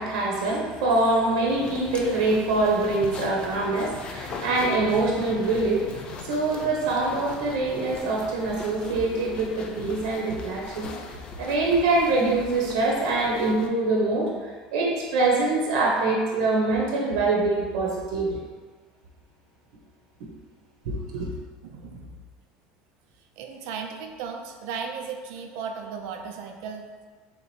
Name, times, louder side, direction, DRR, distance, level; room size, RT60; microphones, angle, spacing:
voice 1, 0.0-10.9 11.4-14.3 14.7-18.4 20.8-21.3, right 2 dB, 85° right, -2 dB, 0.9 m, -24 dB
sound 1, 1.5-13.7, left 5 dB, 30° left, 0.4 m, -41 dB
voice 2, 21.6-22.3 23.4-26.9, right 6 dB, 65° right, 4 dB, 0.5 m, -36 dB
3.7 x 3.0 x 4.2 m, 1.5 s
cardioid pair, 155°, 3 cm